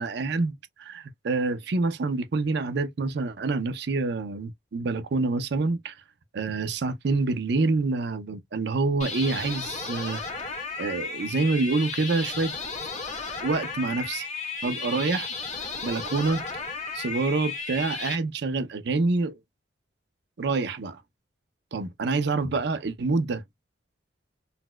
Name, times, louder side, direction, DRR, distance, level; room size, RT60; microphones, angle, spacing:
voice 1, 0.0-5.9 6.3-10.2 10.8-12.5 13.4-14.3 14.6-15.4 15.8-16.4 16.9-19.4 20.4-21.0 21.7-23.4, right 3 dB, 60° right, 0.5 m, -27 dB
sound 1, 9.0-18.2, left 4 dB, 40° left, 1.1 m, -34 dB
4.0 x 2.1 x 2.2 m
head